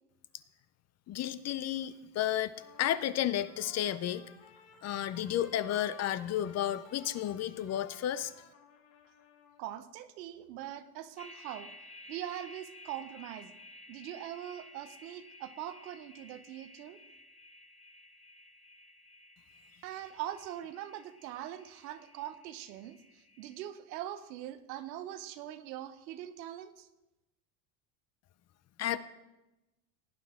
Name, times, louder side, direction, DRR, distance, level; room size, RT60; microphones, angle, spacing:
voice 1, 1.1-2.5 2.8-4.2 4.8-8.3 28.8-29.0, left 11 dB, 35° left, 15 dB, 0.5 m, -32 dB
Trumpet, 2.5-9.7, left 7 dB, 70° left, 1.9 m, -57 dB
voice 2, 9.6-11.7 12.1-13.6 13.9-17.0 19.8-26.9, right 12 dB, 90° right, 12 dB, 0.9 m, -42 dB
sound 1, 11.2-23.7, left 1 dB, 15° left, 1.0 m, -55 dB
17.0 x 9.4 x 3.6 m, 0.98 s
supercardioid pair, 110°, 48 cm